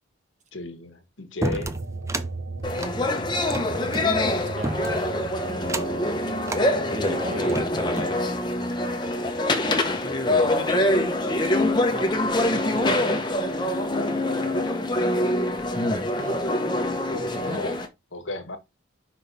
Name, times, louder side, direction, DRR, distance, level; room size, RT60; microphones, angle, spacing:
voice 1, 0.5-1.7 17.1-17.7 18.1-18.6, left 2 dB, 70° left, 1.4 m, -34 dB
sound 1, 1.4-2.3 2.7-4.1 4.6-5.1 5.6-6.0 6.4-6.7 7.3-8.2, right 2 dB, 15° right, 0.5 m, -31 dB
sound 2, 1.6-12.5 12.9-14.3, right 3 dB, 65° right, 0.8 m, -39 dB
sound 3, 2.6-17.9, left 1 dB, 20° left, 1.0 m, -24 dB
voice 2, 3.9-5.0 6.0-7.7 10.5-11.0 11.7-13.3 16.1-16.4 17.2-17.6, right 1 dB, 35° right, 1.2 m, -39 dB
5.6 x 5.2 x 4.1 m
head